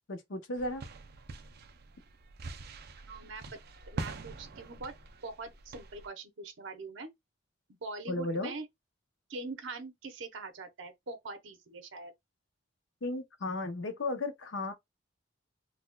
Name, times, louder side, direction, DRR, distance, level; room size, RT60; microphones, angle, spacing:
voice 1, 0.1-0.8 8.1-8.5 13.0-14.7, left 2 dB, 85° left, 0.7 m, -34 dB
sound 1, 0.6-6.1, right 3 dB, 55° right, 0.5 m, -44 dB
voice 2, 3.1-3.4 3.9-4.9 5.2-7.1 7.8-8.7 9.3-12.1, right 3 dB, 85° right, 0.8 m, -43 dB
4.0 x 2.2 x 2.2 m
head